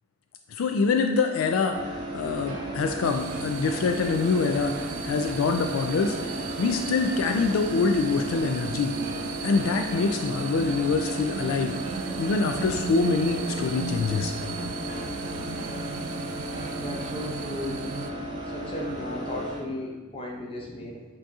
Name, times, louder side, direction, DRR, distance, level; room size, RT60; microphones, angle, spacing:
voice 1, 0.5-4.8 5.0-6.2 6.6-8.9 9.4-11.7 12.2-14.3, left 4 dB, 70° left, 5 dB, 0.3 m, -25 dB
sound 1, 1.7-19.6, right 1 dB, 25° right, 0.7 m, -35 dB
sound 2, 2.5-17.3, right 1 dB, 70° right, 0.7 m, -42 dB
sound 3, 3.0-18.1, right 5 dB, 85° right, 0.4 m, -37 dB
voice 2, 16.7-18.0 18.4-21.0, left 1 dB, 25° left, -2 dB, 0.8 m, -35 dB
7.8 x 2.8 x 2.3 m, 1.2 s
head